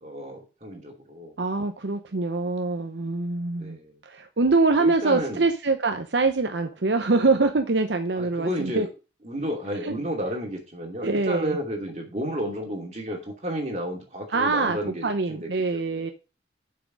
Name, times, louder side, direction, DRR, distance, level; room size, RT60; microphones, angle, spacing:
voice 1, 0.0-1.4 3.6-4.0 4.8-5.4 8.1-8.9 9.2-16.1, equal, 35° right, 0 dB, 2.7 m, -32 dB
voice 2, 1.4-8.9 9.8-9.9 11.0-11.6 14.3-16.1, right 3 dB, 75° right, 6 dB, 0.8 m, -24 dB
7.2 x 5.8 x 6.3 m, 0.32 s
head